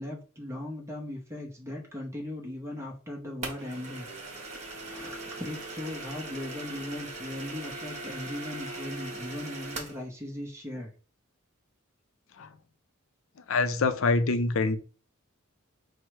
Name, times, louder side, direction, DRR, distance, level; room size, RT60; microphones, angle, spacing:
voice 1, 0.0-4.1 4.7-10.9, left 1 dB, 15° right, 0.7 m, -38 dB
sound 1, 3.4-10.0, right 2 dB, 35° right, 1.1 m, -40 dB
voice 2, 13.5-14.8, left 3 dB, 70° left, 0.5 m, -25 dB
4.6 x 2.1 x 4.6 m
head